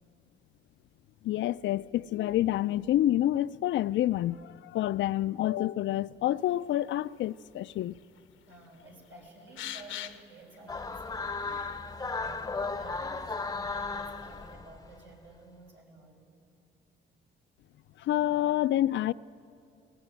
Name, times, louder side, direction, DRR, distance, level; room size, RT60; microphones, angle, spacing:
voice 1, 1.2-8.0 18.0-19.1, left 13 dB, 70° left, 0.4 m, -28 dB
sound 1, 6.4-14.5, left 12 dB, 85° left, 0.8 m, -49 dB
voice 2, 8.5-11.6 12.1-16.2, right 2 dB, 75° right, 6.0 m, -52 dB
sound 2, 10.7-15.0, left 4 dB, 20° left, 0.7 m, -35 dB
22.0 x 18.0 x 9.1 m
cardioid pair, 90°, 20 cm